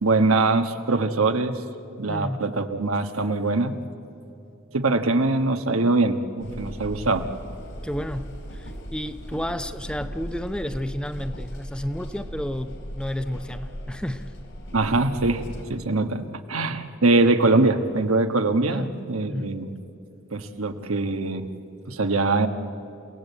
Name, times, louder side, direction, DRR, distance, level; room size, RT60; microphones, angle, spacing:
voice 1, 0.0-1.6 2.0-3.8 4.7-7.3 14.7-15.4 15.7-16.2 16.5-19.7 20.3-21.5 21.8-22.5, right 3 dB, 90° right, 7 dB, 1.4 m, -22 dB
voice 2, 2.1-2.4 7.8-14.3 18.7-18.9 19.3-19.6, equal, 5° left, 9 dB, 0.7 m, -31 dB
sound 1, 6.4-15.7, equal, 65° left, 3.8 m, -38 dB
30.0 x 17.5 x 8.3 m, 2.8 s
head